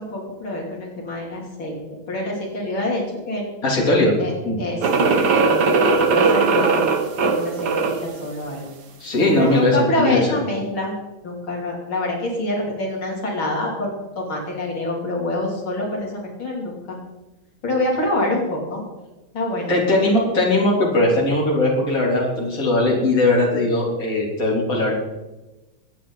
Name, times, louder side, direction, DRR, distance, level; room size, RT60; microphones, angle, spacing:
voice 1, 0.0-3.5 4.2-5.1 5.4-6.9 7.2-8.7 9.3-10.9 11.2-17.0 17.6-18.8 19.3-19.8, left 1 dB, 70° left, -3 dB, 3.9 m, -26 dB
voice 2, 3.6-4.1 4.4-4.6 9.0-10.3 19.7-24.9, left 2 dB, 40° left, -3 dB, 4.0 m, -19 dB
sound 1, 4.8-8.1, right 4 dB, 55° right, 1.7 m, -19 dB
24.5 x 9.3 x 4.1 m, 1.1 s
omnidirectional pair, 2.3 m